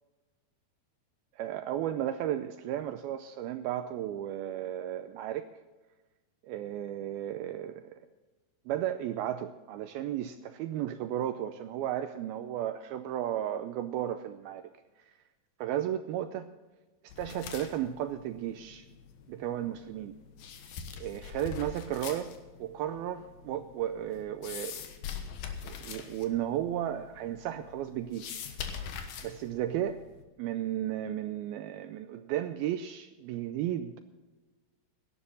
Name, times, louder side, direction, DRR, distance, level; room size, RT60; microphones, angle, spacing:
voice 1, 1.4-5.5 6.4-8.0 8.7-14.7 15.6-16.5 17.2-18.9 19.3-20.1 21.0-22.3 22.6-24.8 25.6-28.5 29.2-30.0 30.4-34.0, right 11 dB, 85° right, 9 dB, 2.2 m, -34 dB
sound 1, 17.1-30.2, left 7 dB, 65° left, 2.8 m, -44 dB
17.0 x 12.0 x 4.1 m, 1.2 s
omnidirectional pair, 4.9 m